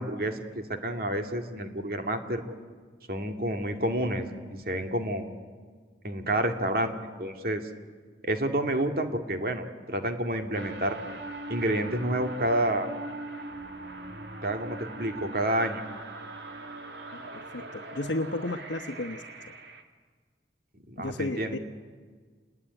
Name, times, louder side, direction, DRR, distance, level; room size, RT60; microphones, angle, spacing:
voice 1, 0.0-2.4 3.1-5.2 6.0-6.9 7.2-7.6 8.2-11.0 11.5-12.9 14.4-15.8 20.9-21.6, right 1 dB, 50° right, 5 dB, 2.5 m, -29 dB
sound 1, 10.5-19.8, right 2 dB, 70° right, 2.4 m, -41 dB
voice 2, 17.1-19.2 21.0-21.6, left 2 dB, 80° left, 5 dB, 1.1 m, -33 dB
28.0 x 20.5 x 9.9 m, 1.6 s
head